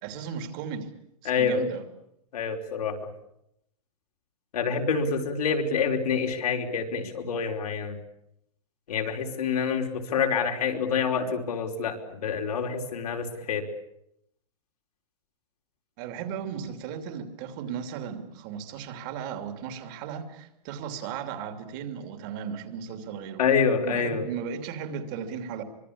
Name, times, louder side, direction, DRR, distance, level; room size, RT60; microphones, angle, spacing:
voice 1, 0.0-0.9 1.2-1.8 16.0-23.4 23.8-25.6, right 7 dB, 30° right, 8 dB, 2.9 m, -36 dB
voice 2, 1.2-1.6 2.3-3.0 4.5-8.0 8.9-13.6 23.4-24.2, left 6 dB, 75° left, 3 dB, 4.8 m, -27 dB
25.0 x 23.0 x 8.6 m, 0.78 s
supercardioid pair, 175°, 20 cm